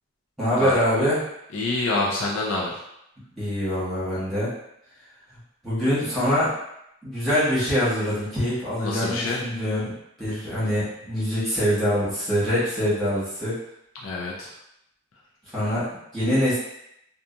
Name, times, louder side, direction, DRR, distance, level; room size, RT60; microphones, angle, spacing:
voice 1, 0.4-1.2 3.4-4.5 5.6-6.5 7.0-13.5 15.5-15.9 16.1-16.6, equal, ahead, -12 dB, 1.2 m, -24 dB
voice 2, 1.5-2.8 8.8-9.4 14.0-14.5, left 2 dB, 85° left, -4 dB, 0.5 m, -26 dB
2.8 x 2.3 x 2.4 m, 0.79 s
head